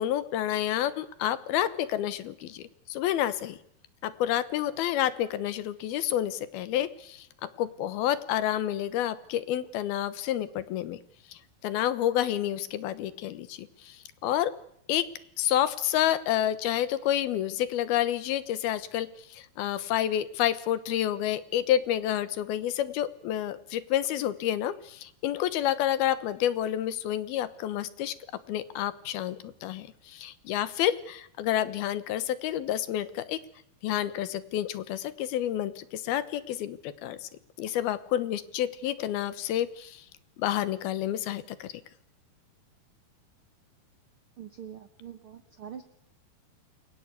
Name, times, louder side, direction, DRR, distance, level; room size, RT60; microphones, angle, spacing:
voice 1, 0.0-3.6 4.0-11.0 11.3-14.5 14.9-15.1 15.4-28.1 28.5-33.4 33.8-37.3 37.6-40.0 40.4-41.7, left 11 dB, 75° left, 15 dB, 3.0 m, -29 dB
voice 2, 44.4-45.8, right 8 dB, 65° right, 9 dB, 1.3 m, -44 dB
28.5 x 21.5 x 8.3 m, 0.73 s
omnidirectional pair, 4.4 m